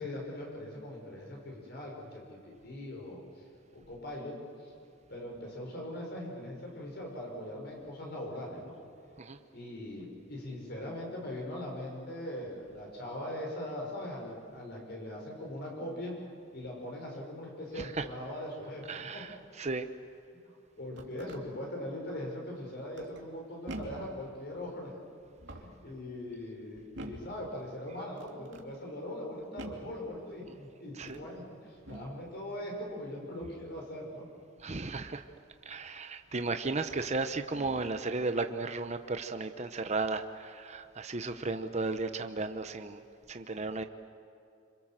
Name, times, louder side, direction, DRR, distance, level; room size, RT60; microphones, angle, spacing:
voice 1, 0.0-3.5 3.7-4.7 5.1-8.7 9.5-16.1 16.5-19.3 20.3-20.4 20.8-24.9 25.5-34.3, left 1 dB, 55° left, -1 dB, 5.6 m, -41 dB
voice 2, 18.9-19.9 31.0-31.2 34.6-35.2 35.7-43.0 43.3-43.8, right 3 dB, 35° right, 8 dB, 0.9 m, -34 dB
sound 1, 20.7-21.4 22.9-23.3 23.7-24.2 25.3-25.9 26.9-27.4 28.2-28.7 29.6-30.0 30.9-31.3 31.8-32.2 33.4-33.7 35.8-35.9 36.8-37.1 37.5-37.9, right 1 dB, 60° right, 2.9 m, -46 dB
27.0 x 26.5 x 7.6 m, 2.6 s
head